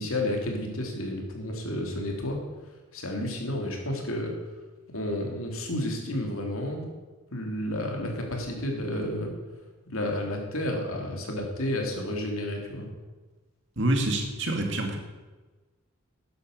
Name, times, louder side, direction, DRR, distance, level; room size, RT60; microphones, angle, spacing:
voice 1, 0.0-2.4 2.9-4.3 4.9-6.9 7.3-9.3 9.9-12.9, left 1 dB, 85° left, 1 dB, 3.0 m, -31 dB
voice 2, 13.8-15.0, right 1 dB, 60° right, 3 dB, 2.3 m, -26 dB
12.0 x 10.0 x 6.6 m, 1.3 s
head